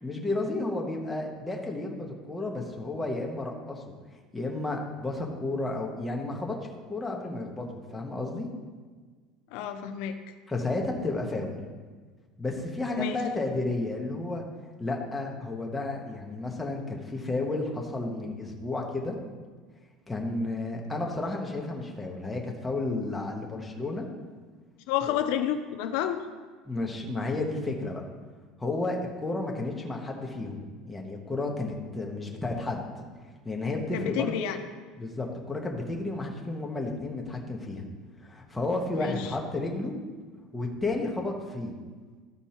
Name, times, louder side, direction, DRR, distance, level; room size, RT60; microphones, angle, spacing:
voice 1, 0.0-3.8 4.3-6.6 6.9-8.5 10.5-11.6 12.4-14.4 14.8-19.2 20.1-24.1 25.1-25.2 26.6-28.0 28.6-30.6 30.9-33.0 33.4-34.5 35.0-37.9 38.2-39.9 40.5-41.7, left 2 dB, 5° left, -1 dB, 1.0 m, -32 dB
voice 2, 9.5-10.2 12.9-13.2 24.9-26.2 33.9-34.6 39.0-39.3, left 10 dB, 65° left, 7 dB, 0.5 m, -29 dB
13.5 x 4.5 x 4.3 m, 1.4 s
cardioid pair, 175°, 0 cm